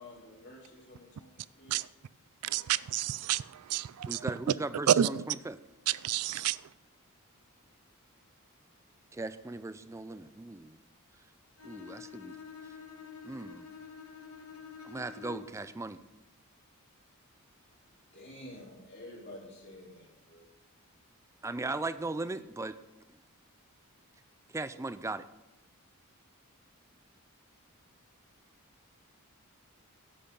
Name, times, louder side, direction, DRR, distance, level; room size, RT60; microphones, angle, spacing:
voice 1, 0.0-1.9 17.7-17.8 18.1-20.5, left 1 dB, 50° left, 3.5 m, -50 dB
voice 2, 2.4-4.2 4.9-5.1 5.9-6.6, right 11 dB, 90° right, 0.4 m, -29 dB
voice 3, 4.1-5.6 9.1-10.8 11.6-12.4 13.2-13.7 14.8-16.0 21.4-22.8 24.5-25.2, right 2 dB, 15° right, 0.4 m, -38 dB
Bowed string instrument, 11.6-15.7, left 7 dB, 70° left, 1.4 m, -48 dB
8.5 x 7.9 x 5.4 m
head